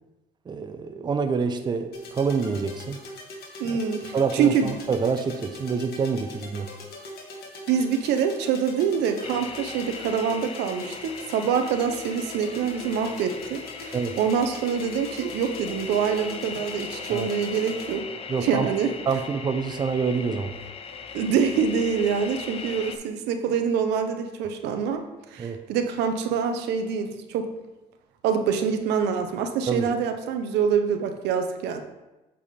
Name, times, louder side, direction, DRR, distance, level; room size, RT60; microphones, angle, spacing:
voice 1, 0.5-3.0 3.6-3.8 4.1-6.7 13.9-14.1 17.1-17.3 18.3-18.7 19.1-20.5 25.4-25.6 29.7-29.9, right 5 dB, 25° right, 7 dB, 0.5 m, -27 dB
sound 1, 1.9-17.9, left 2 dB, 65° left, 1.4 m, -42 dB
voice 2, 3.6-4.7 7.7-18.0 18.4-18.9 21.1-25.0 25.3-27.5 28.2-31.8, right 7 dB, 85° right, 6 dB, 0.7 m, -25 dB
sound 2, 9.2-23.0, left 5 dB, 35° left, 0.5 m, -39 dB
7.5 x 3.5 x 4.1 m, 1.0 s
cardioid pair, 110°, 17 cm